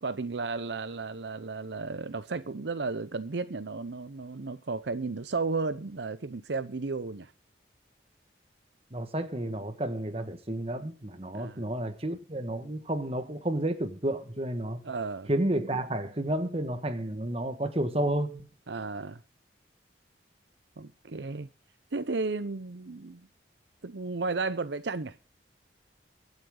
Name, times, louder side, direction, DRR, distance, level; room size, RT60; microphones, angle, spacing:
voice 1, 0.0-7.3 11.3-11.7 14.8-15.3 18.7-19.2 20.8-21.5 21.9-23.3 23.8-25.2, right 3 dB, 75° right, 0.7 m, -34 dB
voice 2, 8.9-14.8 15.3-18.5, right 1 dB, 35° right, 1.6 m, -31 dB
23.5 x 8.3 x 3.8 m
head